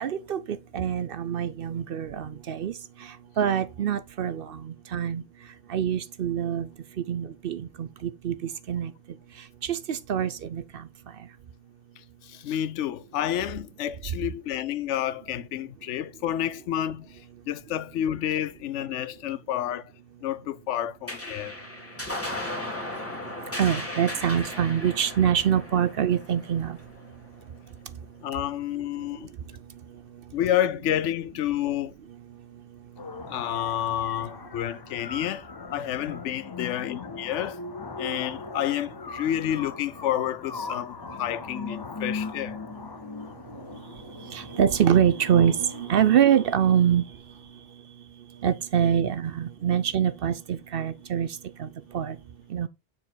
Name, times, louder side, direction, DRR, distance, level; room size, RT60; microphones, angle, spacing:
voice 1, 0.0-2.7 3.4-5.2 5.7-6.7 7.1-8.3 8.7-8.9 9.6-10.8 23.6-26.8 44.3-47.0 48.4-51.3 51.6-51.7 51.9-52.2 52.5-52.7, right 9 dB, 60° right, 0.7 m, -25 dB
voice 2, 12.2-17.1 17.5-19.9 20.2-21.5 28.2-29.3 30.3-31.9 33.3-35.5 35.7-37.6 38.0-42.6, left 11 dB, 80° left, 0.9 m, -29 dB
sound 1, 21.1-27.8, left 1 dB, 10° left, 1.8 m, -36 dB
sound 2, 33.0-47.0, left 4 dB, 30° left, 0.5 m, -39 dB
7.0 x 4.7 x 3.8 m
omnidirectional pair, 1.2 m